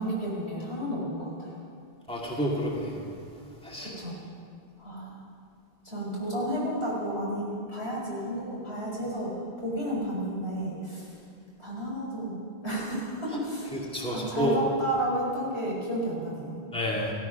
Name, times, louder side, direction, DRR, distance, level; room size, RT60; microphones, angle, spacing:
voice 1, 0.0-1.5 3.8-4.2 4.8-5.2 5.8-11.2 11.6-13.8 14.1-16.6, right 1 dB, 75° left, -5 dB, 5.3 m, -32 dB
voice 2, 2.1-3.0 3.6-3.9 13.9-14.5 16.7-17.1, equal, 5° left, -3 dB, 2.2 m, -29 dB
16.0 x 13.5 x 5.9 m, 2.3 s
omnidirectional pair, 1.1 m